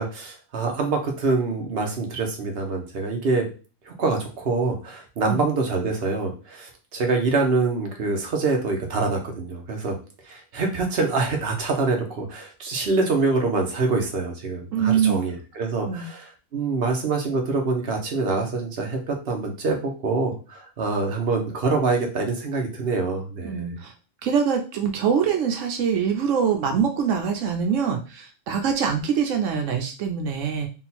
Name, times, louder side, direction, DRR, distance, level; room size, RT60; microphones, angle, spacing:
voice 1, 0.0-3.5 3.9-10.0 10.3-23.7, right 3 dB, 55° right, 1 dB, 1.2 m, -25 dB
voice 2, 14.7-15.2 15.8-16.1 23.4-23.9 24.2-30.7, right 7 dB, 85° right, 4 dB, 1.0 m, -24 dB
3.8 x 2.3 x 4.2 m, 0.34 s
omnidirectional pair, 1.3 m